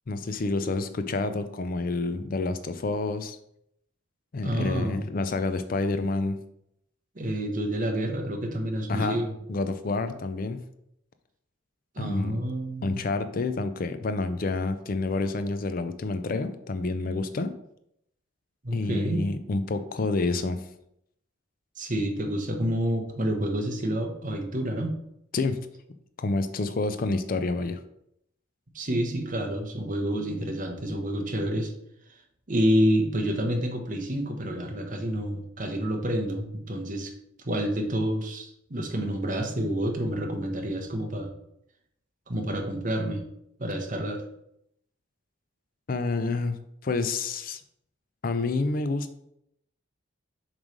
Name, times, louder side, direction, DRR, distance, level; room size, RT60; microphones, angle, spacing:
voice 1, 0.1-3.4 4.3-6.4 8.9-9.2 9.5-10.6 12.0-12.4 12.8-17.5 18.7-20.6 25.3-25.7 26.2-27.8 45.9-46.6 46.8-47.6 48.2-49.2, left 3 dB, 45° left, 10 dB, 0.4 m, -28 dB
voice 2, 4.4-5.0 7.1-9.3 11.9-13.0 18.6-19.3 21.8-24.9 28.7-31.7 32.5-37.1 37.4-41.3 42.3-43.2 43.6-44.2, equal, 40° right, 3 dB, 1.1 m, -28 dB
7.2 x 3.2 x 5.2 m, 0.76 s
head